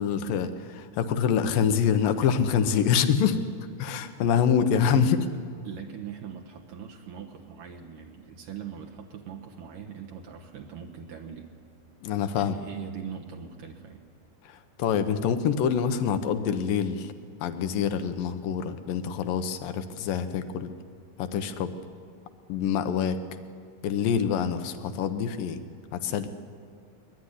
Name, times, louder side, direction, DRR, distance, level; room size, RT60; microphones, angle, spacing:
voice 1, 0.0-3.4 3.8-5.2 12.0-12.5 14.5-17.1 17.4-20.7 21.2-21.7 22.5-23.2 23.8-25.6 25.9-26.3, left 7 dB, 80° left, 9 dB, 2.8 m, -26 dB
voice 2, 4.7-5.1 5.6-11.5 12.4-14.0, right 7 dB, 70° right, 1 dB, 2.9 m, -41 dB
23.0 x 21.0 x 10.0 m, 2.2 s
omnidirectional pair, 4.0 m